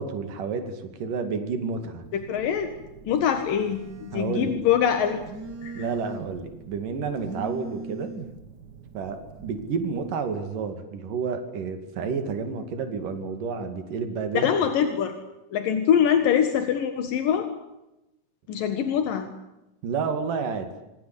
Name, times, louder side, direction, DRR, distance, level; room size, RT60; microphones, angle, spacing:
voice 1, 0.0-2.0 4.1-4.6 5.8-8.1 8.9-14.5 19.8-20.7, right 5 dB, 75° right, 7 dB, 4.1 m, -30 dB
Telephone, 2.0-10.1, right 3 dB, 55° right, 1.1 m, -42 dB
voice 2, 2.1-2.7 3.0-5.2 5.6-5.9 14.3-15.1 15.5-17.5 18.5-19.3, left 8 dB, 85° left, 7 dB, 3.3 m, -23 dB
26.5 x 23.0 x 8.4 m, 0.94 s
omnidirectional pair, 3.8 m